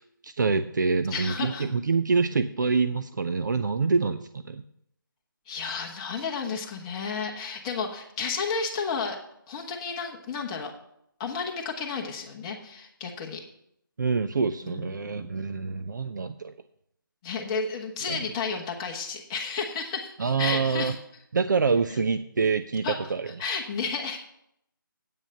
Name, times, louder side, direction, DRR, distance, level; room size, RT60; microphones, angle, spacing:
voice 1, 0.0-4.6 14.0-16.5 18.1-18.2 20.2-20.9 21.3-23.3, right 4 dB, 55° right, 11 dB, 0.5 m, -26 dB
voice 2, 1.1-1.7 5.5-9.2 9.5-10.7 11.2-13.4 14.6-15.4 17.2-20.9 22.8-23.1 23.4-24.2, left 5 dB, 15° left, 0 dB, 1.2 m, -32 dB
8.9 x 6.3 x 7.6 m, 0.74 s
figure-of-eight pair, 160°, 12 cm